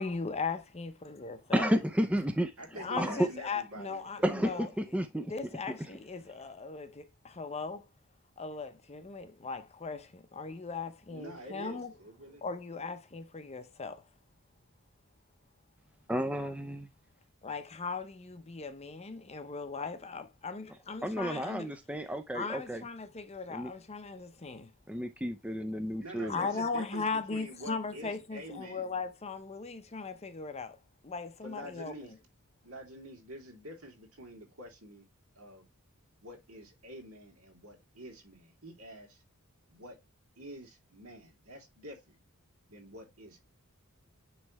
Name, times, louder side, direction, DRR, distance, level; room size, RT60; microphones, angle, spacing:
voice 1, 0.0-1.7 2.7-4.7 5.2-7.9 8.4-11.9 12.4-14.0 17.4-21.7 22.3-24.7 26.3-30.8 31.0-32.2, left 4 dB, 30° left, 0.7 m, -38 dB
voice 2, 1.5-2.5 3.0-3.3 4.2-5.3 16.1-16.9 21.0-22.8 23.5-23.7 24.9-26.5, equal, 5° right, 0.5 m, -31 dB
voice 3, 2.6-4.6 11.1-12.4 26.0-28.9 31.4-32.1 32.6-35.1 35.3-35.6 36.2-39.2 39.7-40.0 40.4-42.2 42.7-43.4, right 1 dB, 70° right, 2.7 m, -47 dB
9.7 x 3.3 x 3.0 m
head